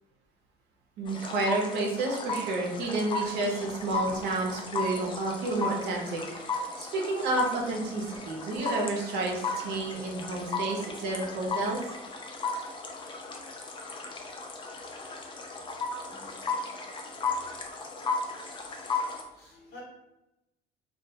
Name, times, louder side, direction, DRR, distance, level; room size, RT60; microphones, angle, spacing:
voice 1, 1.0-6.5 6.8-11.8, right 2 dB, 80° right, -1 dB, 0.6 m, -30 dB
sound 1, 1.1-19.2, left 3 dB, 30° left, 0.4 m, -35 dB
voice 2, 16.1-16.7 19.3-19.8, left 2 dB, 70° left, -4 dB, 1.0 m, -51 dB
2.2 x 2.2 x 2.7 m, 0.95 s
cardioid pair, 110°, 17 cm